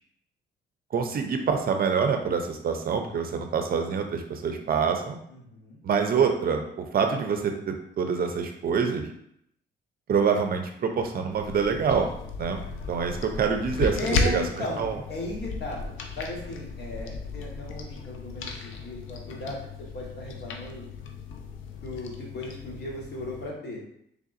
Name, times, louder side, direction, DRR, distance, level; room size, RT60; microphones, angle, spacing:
voice 1, 0.9-5.2 5.8-9.1 10.1-12.1 12.4-12.6 12.9-14.4 14.8-15.0, right 6 dB, 50° right, 5 dB, 0.5 m, -26 dB
voice 2, 5.3-5.8 14.0-15.8 16.2-19.6 19.9-20.9 21.8-23.8, left 1 dB, 55° left, -3 dB, 1.3 m, -36 dB
sound 1, 11.3-23.5, left 4 dB, 80° left, 0.5 m, -35 dB
3.7 x 3.4 x 2.5 m, 0.72 s
cardioid pair, 90°, 20 cm